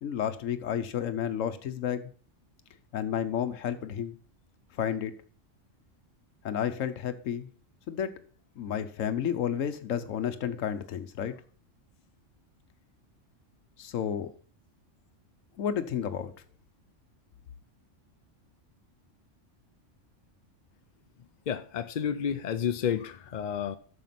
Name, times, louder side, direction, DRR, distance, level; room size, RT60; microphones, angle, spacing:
voice 1, 0.0-2.1 2.9-4.2 4.7-5.1 6.4-7.5 7.9-8.1 8.6-11.3 13.8-14.3 15.6-16.3, left 9 dB, 85° left, 1.2 m, -31 dB
voice 2, 21.5-23.8, left 8 dB, 55° left, 0.5 m, -30 dB
9.2 x 6.7 x 5.8 m
omnidirectional pair, 1.3 m